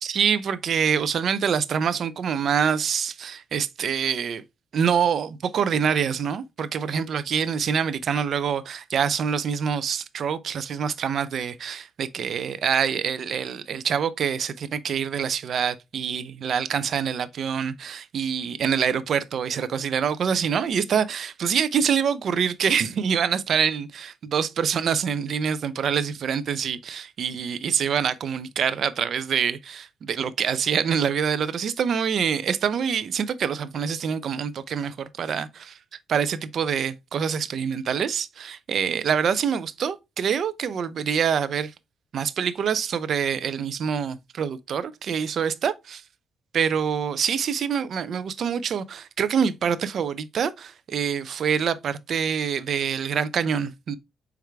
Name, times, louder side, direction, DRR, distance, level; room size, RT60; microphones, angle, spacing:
voice 1, 0.0-4.4 4.7-35.8 36.1-41.7 42.1-46.0 46.5-54.0, right 7 dB, 60° right, 0.5 m, -25 dB
4.6 x 3.5 x 3.3 m
cardioid pair, 90°, 0 cm